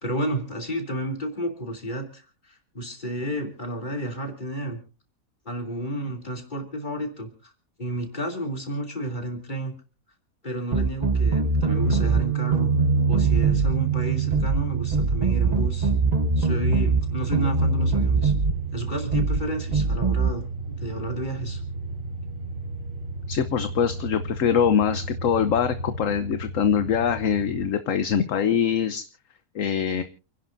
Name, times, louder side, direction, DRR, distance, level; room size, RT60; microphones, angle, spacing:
voice 1, 0.0-4.8 5.4-7.5 7.8-9.7 10.4-12.7 13.1-15.9 16.4-18.3 18.7-21.6, right 1 dB, 30° left, 3 dB, 3.2 m, -31 dB
sound 1, 10.7-12.2 12.5-13.8 14.3-14.6 14.9-17.0 17.3-18.6 19.1-19.4 19.7-20.3, right 3 dB, 40° right, 0.7 m, -22 dB
Guitar, 11.7-19.5, right 16 dB, 85° right, 1.5 m, -29 dB
sound 2, 13.2-27.7, right 5 dB, 55° right, 3.4 m, -32 dB
voice 2, 23.3-29.0 29.5-30.0, left 8 dB, 65° left, 10 dB, 1.2 m, -23 dB
29.5 x 11.0 x 2.6 m, 0.35 s
omnidirectional pair, 1.5 m